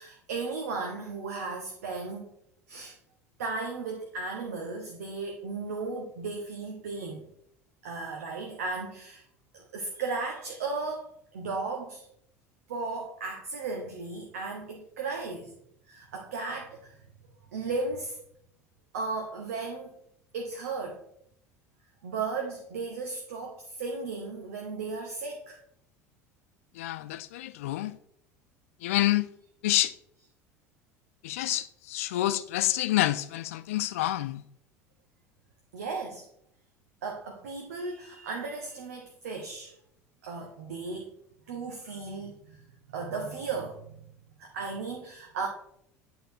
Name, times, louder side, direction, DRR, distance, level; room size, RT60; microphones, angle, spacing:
voice 1, 0.0-2.3 2.7-3.0 3.4-7.3 7.8-9.2 9.5-12.1 12.7-15.6 15.9-17.0 17.5-18.2 18.9-19.9 20.3-21.0 22.0-25.6 35.7-36.2 37.0-39.7 40.2-41.1 41.5-43.9 44.4-45.5, right 4 dB, 65° right, 0.9 m, -35 dB
voice 2, 26.8-27.9 28.8-29.3 29.6-29.9 31.2-34.4, left 15 dB, 60° left, 0.4 m, -28 dB
8.4 x 3.8 x 4.3 m
figure-of-eight pair, 70°, 8 cm